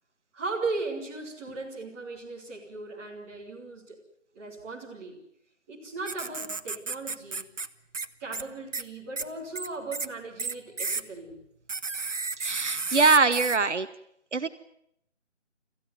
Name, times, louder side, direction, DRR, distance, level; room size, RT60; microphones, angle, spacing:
voice 1, 0.3-4.0 4.3-5.2 5.7-7.5 8.2-11.4, right 3 dB, 10° right, -6 dB, 3.3 m, -37 dB
sound 1, 6.1-7.7 7.9-8.1 8.3-8.4 8.7-8.8 9.2-9.3 9.5-10.1 10.4-11.0 11.7-13.6, right 4 dB, 90° right, 1.4 m, -32 dB
voice 2, 12.4-13.9 14.3-14.5, right 4 dB, 70° right, 11 dB, 1.3 m, -23 dB
26.5 x 15.0 x 9.5 m, 0.76 s
figure-of-eight pair, 170°, 36 cm